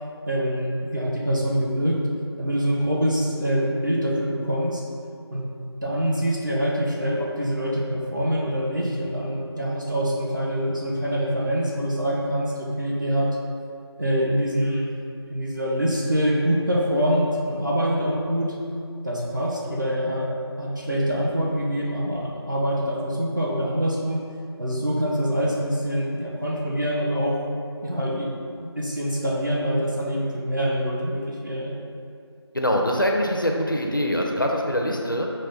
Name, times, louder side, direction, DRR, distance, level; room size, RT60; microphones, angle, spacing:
voice 1, 0.3-2.0 2.4-4.8 5.3-5.4 5.8-13.4 14.0-14.9 15.3-18.5 19.0-24.2 24.6-27.4 27.8-28.3 28.6-31.7, equal, 45° right, -4 dB, 0.7 m, -25 dB
voice 2, 32.5-35.3, equal, 50° left, 0 dB, 0.4 m, -23 dB
5.0 x 2.1 x 3.9 m, 2.4 s
figure-of-eight pair, 180°, 14 cm